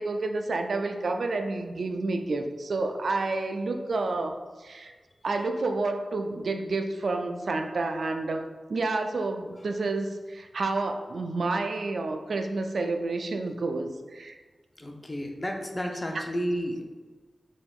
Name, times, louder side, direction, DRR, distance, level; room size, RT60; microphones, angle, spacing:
voice 1, 0.0-4.9 5.2-8.4 8.7-14.4 16.1-16.2, right 3 dB, 75° right, 5 dB, 0.3 m, -29 dB
voice 2, 14.8-16.8, equal, 30° left, 2 dB, 0.6 m, -31 dB
4.0 x 3.5 x 2.4 m, 1.4 s
cardioid pair, 60°, 0 cm